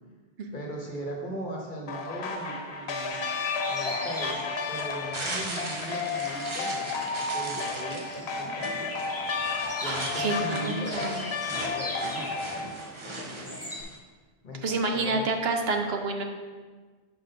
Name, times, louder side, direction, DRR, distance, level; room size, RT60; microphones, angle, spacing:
voice 1, 0.5-3.2 3.6-4.4 4.7-9.1 9.8-13.7 14.4-15.3, equal, 50° left, 0 dB, 1.3 m, -39 dB
sound 1, 1.9-12.7, left 4 dB, 85° left, 1.1 m, -32 dB
sound 2, 3.1-13.8, left 1 dB, 15° left, 1.1 m, -41 dB
sound 3, 4.1-14.0, right 2 dB, 30° right, 0.8 m, -39 dB
voice 2, 9.8-11.2 14.6-16.2, right 3 dB, 75° right, 4 dB, 1.0 m, -29 dB
6.2 x 4.5 x 5.6 m, 1.4 s
omnidirectional pair, 1.0 m